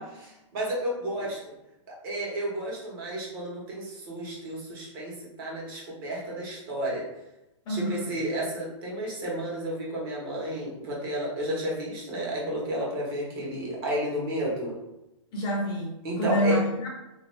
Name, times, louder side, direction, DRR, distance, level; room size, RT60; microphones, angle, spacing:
voice 1, 0.0-1.4 1.9-7.1 7.7-14.7 16.0-16.6, right 1 dB, 45° right, -3 dB, 1.1 m, -32 dB
voice 2, 7.7-8.1 15.3-16.9, equal, 25° left, -2 dB, 0.7 m, -27 dB
2.6 x 2.3 x 3.2 m, 0.94 s
hypercardioid pair, 140°, 16 cm